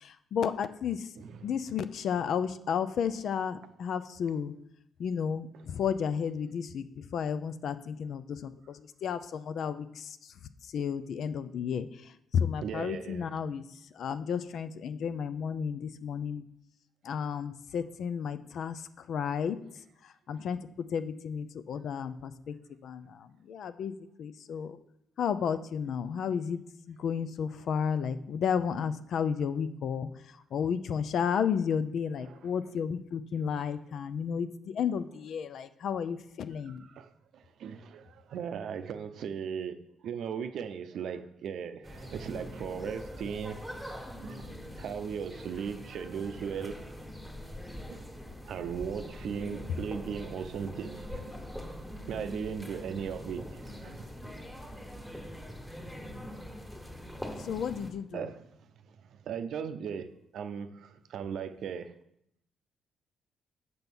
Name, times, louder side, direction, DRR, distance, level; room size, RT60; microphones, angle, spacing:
voice 1, 0.0-1.1 1.4-4.5 5.0-6.9 7.1-10.2 10.7-11.9 12.3-13.6 14.0-16.4 17.0-18.8 19.1-19.6 20.3-20.6 20.9-22.5 22.8-24.8 25.2-26.6 26.9-30.1 30.5-36.9 57.4-58.3, left 7 dB, 65° left, 0.5 m, -32 dB
voice 2, 1.2-1.6 5.5-5.6 12.6-13.3 20.3-20.4 32.2-32.5 33.9-34.0 36.6-43.8 44.2-46.9 47.9-48.1 48.4-51.3 52.1-54.5 58.1-58.5 58.9-61.9, right 7 dB, 70° right, 0.6 m, -38 dB
sound 1, 41.8-57.9, equal, 5° left, 1.5 m, -43 dB
6.8 x 5.4 x 6.1 m
cardioid pair, 90°, 0 cm